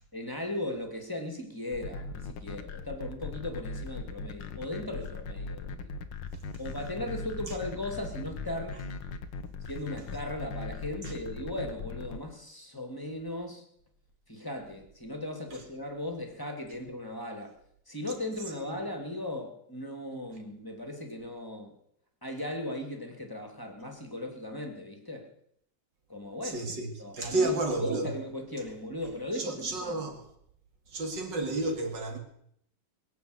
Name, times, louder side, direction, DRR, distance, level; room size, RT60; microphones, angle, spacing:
voice 1, 0.1-6.1 6.6-8.8 9.6-13.6 14.3-17.6 17.9-21.8 22.2-25.3 26.1-26.7 27.0-30.0, left 1 dB, 10° left, 2.4 m, -37 dB
sound 1, 1.7-12.2, left 4 dB, 80° left, 2.0 m, -39 dB
voice 2, 26.4-26.9 27.1-28.1 29.3-30.2 30.9-32.2, right 2 dB, 60° right, 3.2 m, -31 dB
22.0 x 7.5 x 8.1 m
omnidirectional pair, 2.2 m